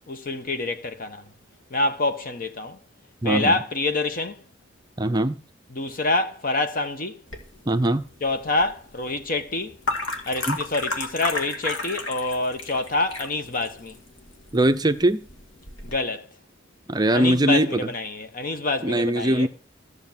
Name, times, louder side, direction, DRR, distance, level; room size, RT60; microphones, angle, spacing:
voice 1, 0.1-1.2 1.7-2.8 3.2-4.4 5.7-7.2 8.2-9.8 10.3-14.0 15.8-16.3 17.1-19.5, left 2 dB, 45° left, 1.1 m, -26 dB
voice 2, 3.2-3.6 5.0-5.4 7.7-8.0 10.5-10.6 14.5-15.2 16.9-17.8 18.8-19.5, right 1 dB, 20° right, 0.6 m, -21 dB
sound 1, 7.3-16.0, left 2 dB, 80° left, 2.2 m, -34 dB
14.5 x 6.5 x 7.4 m
head